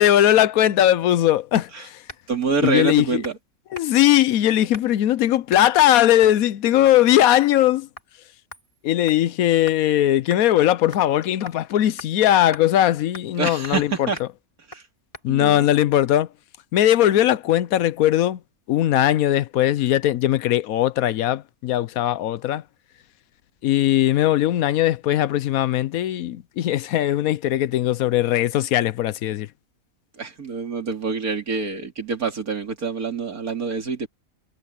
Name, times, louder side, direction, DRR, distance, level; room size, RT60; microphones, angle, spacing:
voice 1, 0.0-2.0 2.6-3.2 3.7-7.9 8.8-13.9 15.2-16.3 16.7-18.4 18.7-22.6 23.6-29.5, left 12 dB, 80° left, 1.1 m, -19 dB
sound 1, 1.5-1.7 2.1-2.3 2.6-2.9 3.2-3.4 3.7-4.1 4.7-5.0 5.5-5.7 6.2-6.4 6.8-7.0 7.4-7.7 8.0-8.1 8.5-9.8 10.3-10.4 10.9-11.1 11.5-11.6 12.0-12.1 12.5-12.6 13.1-13.4 13.6-13.8 14.2-14.3 14.7-14.8 15.1-15.3, left 1 dB, 20° left, 4.0 m, -42 dB
voice 2, 2.3-3.4 13.4-14.2 14.7-14.8 15.3-15.7 30.1-34.1, right 4 dB, 85° right, 3.1 m, -26 dB
omnidirectional pair, 1.5 m